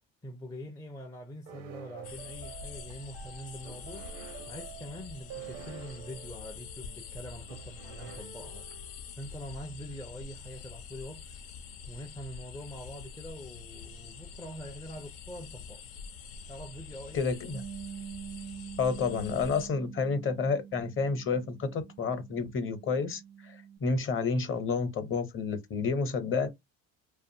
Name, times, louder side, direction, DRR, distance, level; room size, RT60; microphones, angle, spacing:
voice 1, 0.2-4.1 4.5-8.7 9.2-11.2 11.9-15.8 16.5-17.4, equal, 10° left, 0.4 m, -44 dB
sound 1, 1.5-9.1, right 8 dB, 80° right, 0.8 m, -48 dB
sound 2, 2.0-19.7, left 6 dB, 80° left, 0.8 m, -46 dB
voice 2, 17.1-17.6 18.8-26.5, left 4 dB, 35° left, 0.9 m, -30 dB
Bass guitar, 17.5-23.8, right 8 dB, 45° right, 0.5 m, -45 dB
2.6 x 2.4 x 2.6 m
supercardioid pair, 85°, 35 cm